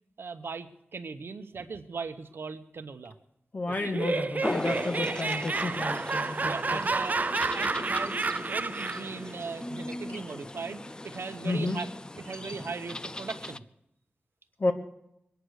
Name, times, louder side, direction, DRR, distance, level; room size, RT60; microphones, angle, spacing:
voice 1, 0.2-3.1 3.7-3.9 5.0-5.1 6.4-7.2 7.5-11.9 12.2-13.6, right 4 dB, 75° right, 10 dB, 1.1 m, -39 dB
voice 2, 3.5-6.8 11.4-11.8 14.6-14.7, left 2 dB, 45° left, 5 dB, 1.6 m, -31 dB
Laughter, 3.7-9.2, right 3 dB, 45° right, 0.5 m, -30 dB
sound 1, 4.4-13.6, left 1 dB, 20° left, 0.5 m, -38 dB
22.0 x 9.3 x 6.5 m, 0.82 s
wide cardioid pair, 95°, 4 cm